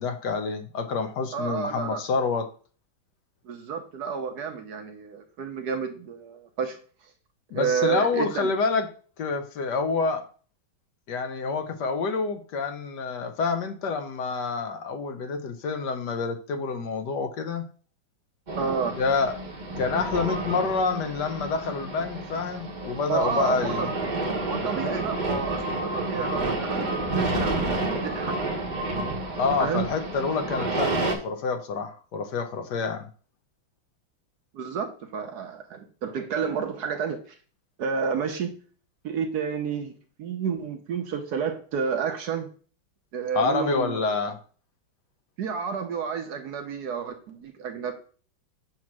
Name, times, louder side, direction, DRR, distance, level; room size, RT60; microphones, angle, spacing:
voice 1, 0.0-2.5 7.5-8.9 9.2-10.2 11.1-17.7 19.0-19.4 19.8-23.9 29.4-33.1 43.3-44.4, left 4 dB, 65° left, 7 dB, 1.3 m, -27 dB
voice 2, 1.3-2.0 3.4-6.8 7.5-8.5 18.6-19.0 23.1-23.9 24.4-28.3 29.6-29.9 34.5-37.3 37.8-38.5 39.0-39.9 40.2-42.5 43.1-44.1 45.4-47.9, right 6 dB, 65° right, 6 dB, 1.2 m, -30 dB
sound 1, 18.5-31.2, right 2 dB, 30° right, 0.9 m, -30 dB
7.4 x 3.0 x 5.9 m, 0.40 s
omnidirectional pair, 2.1 m